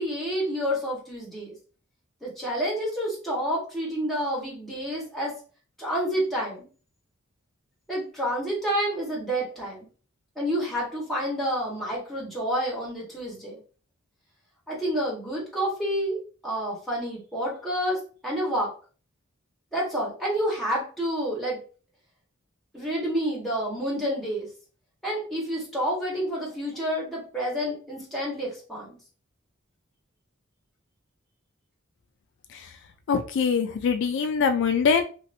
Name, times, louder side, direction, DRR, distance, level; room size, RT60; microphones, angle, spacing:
voice 1, 0.0-1.5 2.2-5.3 5.8-6.7 7.9-9.9 10.3-13.6 14.7-16.2 16.4-18.7 19.7-21.6 22.7-24.5 25.0-29.0, equal, ahead, -6 dB, 1.4 m, -29 dB
voice 2, 33.1-35.0, left 6 dB, 60° left, 8 dB, 0.3 m, -23 dB
2.9 x 2.8 x 2.7 m, 0.38 s
head